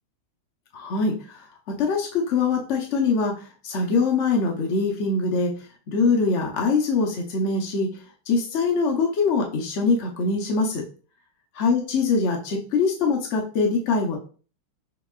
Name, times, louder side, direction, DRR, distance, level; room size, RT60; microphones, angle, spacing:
voice 1, 0.7-1.5 1.8-5.5 5.9-7.9 8.3-10.8 11.6-14.2, left 4 dB, 85° left, 0 dB, 0.6 m, -23 dB
5.8 x 2.9 x 2.4 m, 0.38 s
omnidirectional pair, 2.4 m